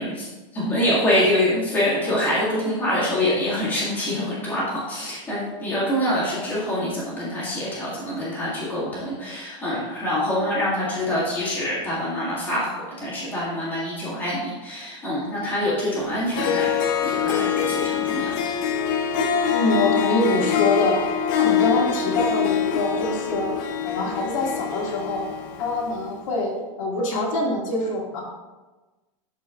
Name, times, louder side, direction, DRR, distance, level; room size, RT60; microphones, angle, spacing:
voice 1, 0.0-12.7 13.0-18.4, left 1 dB, 10° left, -7 dB, 1.8 m, -25 dB
Harp, 16.1-16.2 16.3-25.9, left 8 dB, 40° left, 0.5 m, -24 dB
voice 2, 19.5-21.0 21.3-23.5 23.8-25.3 25.6-28.2, left 2 dB, 70° left, -2 dB, 1.9 m, -24 dB
11.0 x 4.5 x 2.3 m, 1.2 s
supercardioid pair, 180°, 17 cm